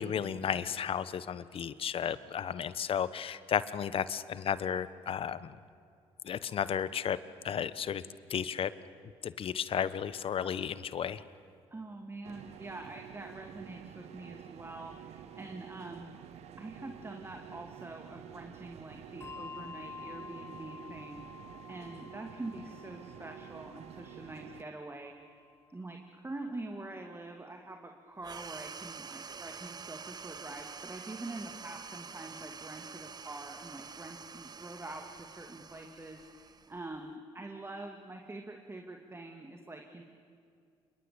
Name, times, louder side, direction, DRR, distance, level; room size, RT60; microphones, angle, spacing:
voice 1, 0.0-5.6 6.2-7.2 7.4-8.0 8.3-8.7 9.2-11.2, left 8 dB, 55° left, 15 dB, 1.1 m, -33 dB
voice 2, 11.7-16.1 16.6-25.4 25.7-40.0, right 2 dB, 20° right, 4 dB, 2.4 m, -45 dB
sound 1, 12.2-24.6, right 10 dB, 70° right, 1.0 m, -50 dB
Bell, 19.2-26.1, left 5 dB, 20° left, 1.3 m, -50 dB
sound 2, 28.2-37.1, right 5 dB, 35° right, 0.9 m, -47 dB
27.0 x 22.5 x 8.8 m, 2.3 s
supercardioid pair, 65°, 11 cm